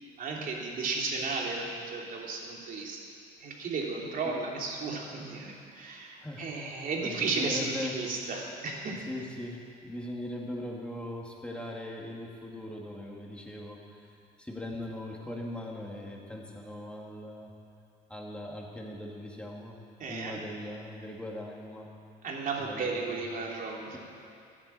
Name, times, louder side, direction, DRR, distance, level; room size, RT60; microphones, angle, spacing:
voice 1, 0.2-3.0 3.4-9.0 20.0-20.4 22.2-24.0, right 4 dB, 55° right, -1 dB, 3.2 m, -34 dB
voice 2, 6.2-8.0 8.9-13.8 14.4-17.5 18.1-19.7 20.1-21.9 22.6-23.2, left 1 dB, 5° left, -2 dB, 2.6 m, -40 dB
14.5 x 11.0 x 8.7 m, 2.5 s
cardioid pair, 110°, 17 cm